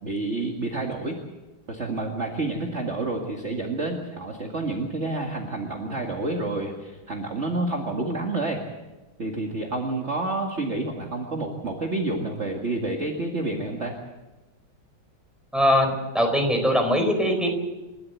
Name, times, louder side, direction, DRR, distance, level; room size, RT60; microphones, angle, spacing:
voice 1, 0.0-1.2 1.7-8.6 9.2-14.0, right 2 dB, 35° right, 1 dB, 2.2 m, -29 dB
voice 2, 15.5-17.5, equal, ahead, 3 dB, 4.4 m, -21 dB
29.0 x 12.5 x 8.3 m, 1.1 s
omnidirectional pair, 2.2 m